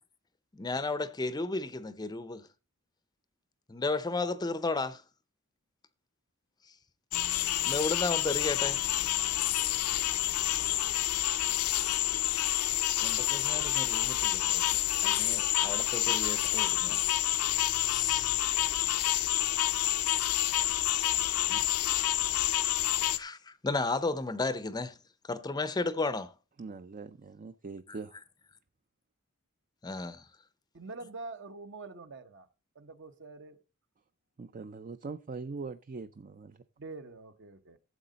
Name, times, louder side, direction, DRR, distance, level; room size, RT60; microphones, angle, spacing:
voice 1, 0.5-2.4 3.7-5.0 7.6-8.8 11.7-11.8 13.0-17.0 17.7-18.4 21.5-22.3 23.2-24.9 25.3-26.3 29.8-30.2, left 3 dB, 20° left, 0.5 m, -34 dB
sound 1, 7.1-23.2, left 14 dB, 80° left, 0.6 m, -28 dB
voice 2, 26.6-28.2 34.4-36.6, right 4 dB, 35° right, 0.4 m, -42 dB
voice 3, 30.7-32.5 32.7-33.6 36.8-37.8, right 3 dB, 55° right, 1.0 m, -45 dB
13.0 x 7.5 x 4.0 m
head